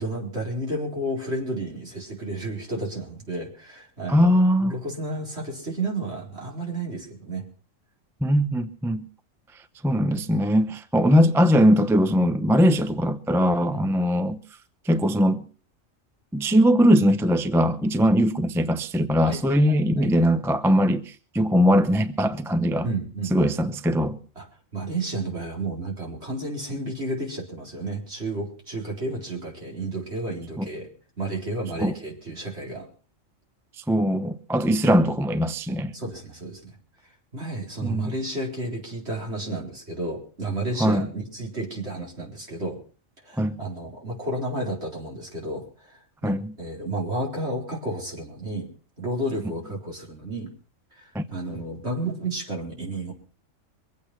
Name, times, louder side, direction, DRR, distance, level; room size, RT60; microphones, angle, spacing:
voice 1, 0.0-4.3 4.6-7.5 13.7-13.8 18.0-18.1 19.2-19.4 19.7-20.1 22.8-23.3 24.4-24.5 24.7-30.9 31.2-32.9 35.9-36.8 37.3-42.8 43.2-48.7 49.0-50.5 51.0-53.1, right 2 dB, 55° right, 4.6 m, -32 dB
voice 2, 4.1-4.7 8.2-9.0 9.8-14.4 14.8-15.4 16.3-22.9 23.3-24.2 30.6-30.7 31.8-31.9 33.8-35.9 37.8-38.1 40.8-41.1 43.4-43.6 46.2-46.6 51.1-51.2, equal, 5° right, 0.5 m, -21 dB
23.5 x 8.4 x 5.8 m
omnidirectional pair, 1.3 m